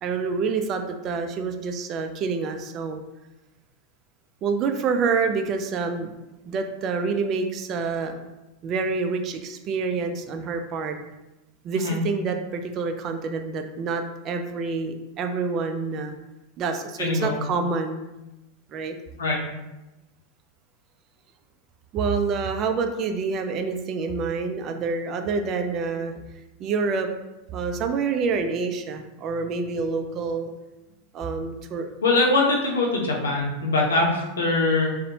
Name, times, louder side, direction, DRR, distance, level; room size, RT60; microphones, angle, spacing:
voice 1, 0.0-3.0 4.4-6.1 6.5-8.3 8.6-11.0 11.6-16.1 16.6-18.1 18.7-19.0 21.9-26.1 26.6-27.1 27.5-30.5 31.1-31.9, right 4 dB, 40° right, 6 dB, 0.3 m, -27 dB
voice 2, 17.0-17.4 19.2-19.4 32.0-35.0, left 2 dB, 80° left, -1 dB, 0.6 m, -22 dB
2.6 x 2.0 x 2.7 m, 1.0 s
hypercardioid pair, 90°, 0 cm